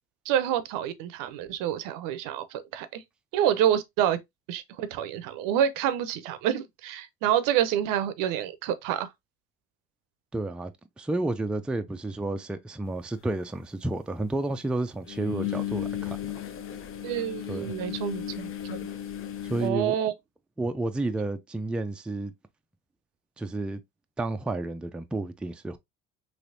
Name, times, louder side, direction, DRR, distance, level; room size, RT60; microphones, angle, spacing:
voice 1, 0.3-3.0 3.3-4.2 4.5-9.1 17.0-18.8 19.6-20.1, right 10 dB, 75° right, 0.6 m, -27 dB
voice 2, 10.3-10.7 11.0-16.2 17.5-17.7 19.4-20.0 20.6-22.3 23.4-23.8 24.2-25.8, right 2 dB, 5° right, 0.3 m, -31 dB
sound 1, 13.1-13.2 15.1-19.7, left 10 dB, 40° left, 0.6 m, -35 dB
3.3 x 3.0 x 2.6 m
supercardioid pair, 80°, 33 cm